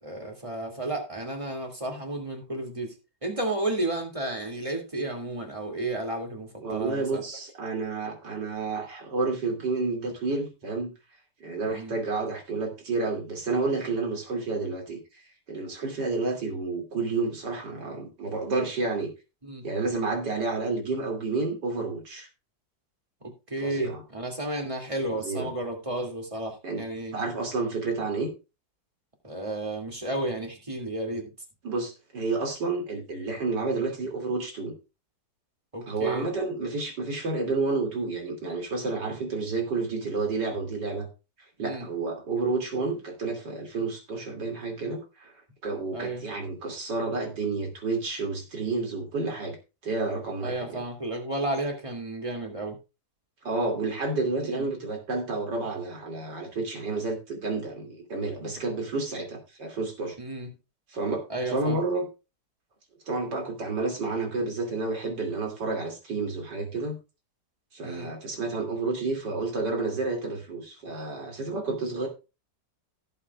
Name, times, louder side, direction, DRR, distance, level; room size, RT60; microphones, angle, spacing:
voice 1, 0.0-2.9 3.2-7.2 11.6-11.9 19.4-19.6 23.2-27.1 29.2-31.3 35.7-36.3 41.6-41.9 45.9-46.2 50.4-52.8 54.4-54.6 60.2-60.5 61.3-61.8 67.8-68.1, right 2 dB, 20° right, 2 dB, 2.5 m, -32 dB
voice 2, 6.6-10.9 11.4-15.0 15.5-19.1 19.6-22.3 23.6-24.0 25.1-25.5 26.6-26.8 27.1-28.3 31.6-34.7 35.8-41.1 41.6-45.3 45.6-49.6 49.8-50.8 53.4-60.1 60.9-62.0 63.1-67.0 67.7-72.1, right 3 dB, 85° right, 3 dB, 3.3 m, -30 dB
17.0 x 7.7 x 2.4 m, 0.28 s
omnidirectional pair, 1.8 m